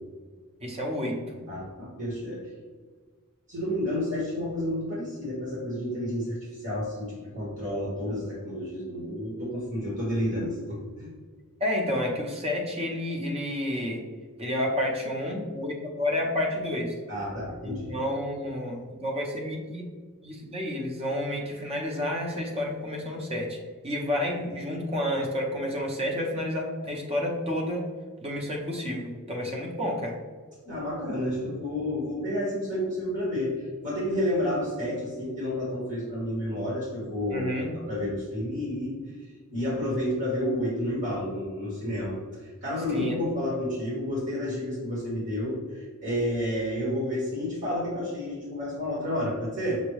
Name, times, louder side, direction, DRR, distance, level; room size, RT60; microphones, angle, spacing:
voice 1, 0.6-1.4 11.6-14.0 14.4-16.9 17.6-19.8 20.2-23.6 23.8-27.8 28.2-30.2 37.3-37.7 42.9-43.2, left 1 dB, 25° right, 0 dB, 0.8 m, -30 dB
voice 2, 1.5-2.4 3.5-6.4 6.6-11.1 17.1-18.0 30.6-39.0 39.5-42.2 42.6-49.8, left 1 dB, 55° right, -7 dB, 1.3 m, -30 dB
6.1 x 2.2 x 3.1 m, 1.5 s
head